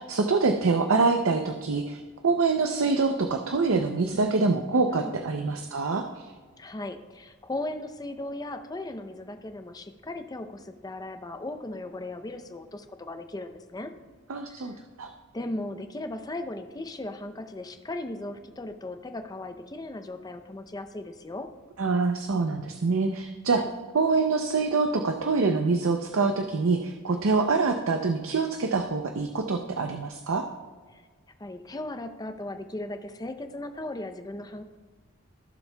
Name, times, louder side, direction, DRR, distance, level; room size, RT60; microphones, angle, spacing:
voice 1, 0.0-6.3 14.3-15.1 21.8-23.6 23.9-30.5, right 4 dB, 85° right, 5 dB, 0.6 m, -25 dB
voice 2, 6.6-13.9 14.5-14.8 15.3-21.5 23.5-23.7 30.9-31.0 31.4-34.6, left 2 dB, 20° left, 7 dB, 0.6 m, -37 dB
15.5 x 7.1 x 2.2 m, 1.4 s
head